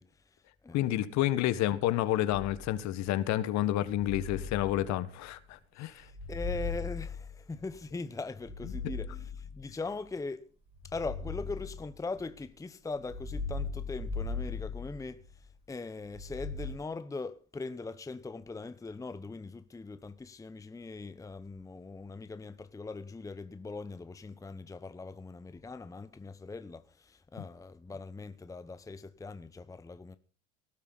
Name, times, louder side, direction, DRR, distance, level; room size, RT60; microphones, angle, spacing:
voice 1, 0.0-0.9 5.8-10.5 10.8-30.2, left 3 dB, 10° left, 0.9 m, -41 dB
voice 2, 0.7-6.1, left 13 dB, 50° left, 1.6 m, -29 dB
sound 1, 2.3-3.0 3.8-5.4 6.0-7.8 8.3-9.9 10.7-12.4 13.0-15.5 16.1-16.7, left 4 dB, 15° right, 3.8 m, -39 dB
18.5 x 12.0 x 4.1 m
hypercardioid pair, 85°, 35 cm